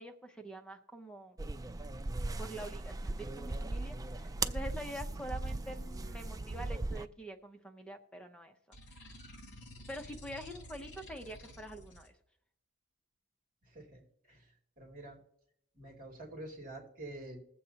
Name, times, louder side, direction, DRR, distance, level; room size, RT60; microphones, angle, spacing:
voice 1, 0.0-1.4 2.4-9.2 9.9-12.2, equal, 5° left, 4 dB, 0.7 m, -46 dB
sound 1, 1.4-7.0, right 2 dB, 15° right, 0.3 m, -38 dB
sound 2, 8.7-12.1, left 1 dB, 55° left, 2.2 m, -51 dB
voice 2, 13.6-15.2 15.7-17.4, right 1 dB, 40° right, -1 dB, 2.6 m, -48 dB
21.0 x 7.6 x 2.9 m, 0.75 s
head